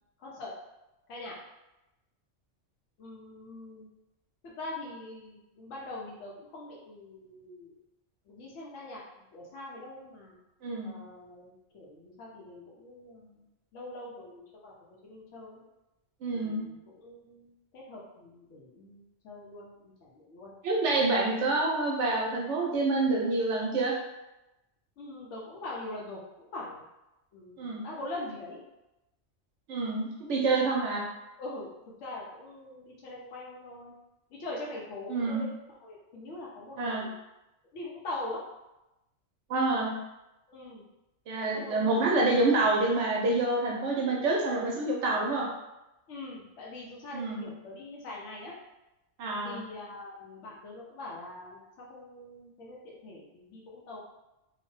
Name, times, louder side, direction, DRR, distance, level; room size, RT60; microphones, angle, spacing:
voice 1, 0.2-0.5 1.1-1.3 3.0-3.9 4.4-7.8 8.3-9.0 9.3-10.4 10.8-13.4 13.7-14.7 15.0-15.6 16.3-20.5 25.0-26.8 27.3-28.6 31.4-31.7 32.0-33.9 34.3-35.5 35.8-37.1 37.7-38.4 40.5-40.8 41.5-42.1 46.1-48.5 49.4-54.0, left 2 dB, 75° left, -4 dB, 1.0 m, -43 dB
voice 2, 10.6-11.0 16.2-16.7 20.6-24.0 27.6-27.8 29.7-31.0 35.1-35.4 36.8-37.0 39.5-39.9 41.3-45.5 47.1-47.4 49.2-49.6, right 2 dB, 75° right, -2 dB, 0.9 m, -27 dB
2.8 x 2.1 x 3.1 m, 0.95 s
omnidirectional pair, 1.3 m